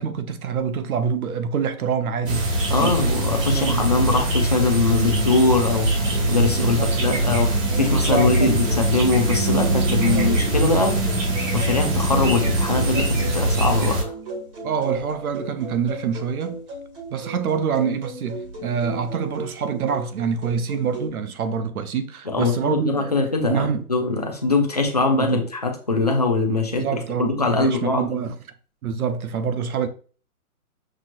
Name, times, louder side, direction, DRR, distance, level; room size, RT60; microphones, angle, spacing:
voice 1, 0.0-2.5 2.8-3.1 3.5-3.8 6.6-7.2 7.7-8.6 9.9-10.3 14.6-16.6 17.1-23.1 23.5-23.8 25.1-25.4 26.8-28.3 28.8-29.9, right 6 dB, 75° right, 0.8 m, -26 dB
sound 1, 2.3-14.0, right 1 dB, 55° right, 1.8 m, -22 dB
voice 2, 2.7-11.0 11.5-14.1 22.3-26.8 27.4-28.2, left 3 dB, 30° left, 0.4 m, -22 dB
sound 2, 8.4-21.1, right 2 dB, 40° right, 1.9 m, -36 dB
6.0 x 2.8 x 2.5 m
hypercardioid pair, 165°, 44 cm